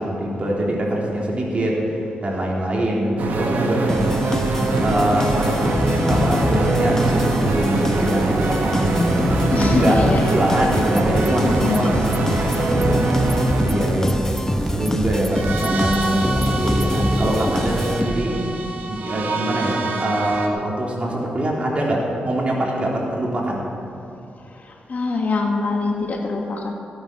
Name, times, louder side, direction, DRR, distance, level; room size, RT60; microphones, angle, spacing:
voice 1, 0.0-3.9 4.8-13.4 13.7-14.2 14.5-18.4 18.9-23.7, right 1 dB, 40° right, -3 dB, 3.4 m, -23 dB
sound 1, 3.2-20.5, right 2 dB, 80° right, 1.5 m, -24 dB
sound 2, 3.9-18.5, left 1 dB, 15° left, 1.2 m, -24 dB
voice 2, 9.5-10.4 11.4-12.0 24.5-26.7, left 3 dB, 50° left, 1 dB, 1.9 m, -24 dB
sound 3, 10.8-17.0, right 1 dB, 5° right, 0.8 m, -31 dB
16.0 x 9.6 x 6.1 m, 2.6 s
cardioid pair, 90°, 3 cm